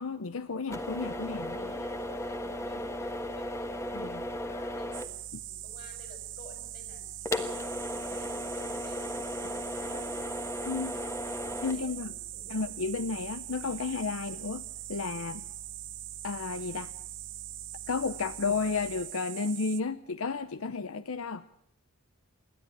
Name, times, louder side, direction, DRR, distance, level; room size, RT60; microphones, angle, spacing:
voice 1, 0.0-1.7 3.9-4.2 5.3-5.4 10.6-11.0 11.3-12.1 12.5-15.4 16.2-16.9 17.9-21.4, left 4 dB, 80° left, 13 dB, 0.7 m, -33 dB
sound 1, 0.7-19.1, left 1 dB, 15° left, 1.4 m, -39 dB
voice 2, 1.6-5.1 5.4-7.1 7.6-10.3 10.9-12.7, left 2 dB, 45° left, 5 dB, 6.4 m, -53 dB
sound 2, 4.9-19.8, right 16 dB, 60° right, 0.7 m, -42 dB
28.0 x 11.0 x 9.0 m, 0.73 s
head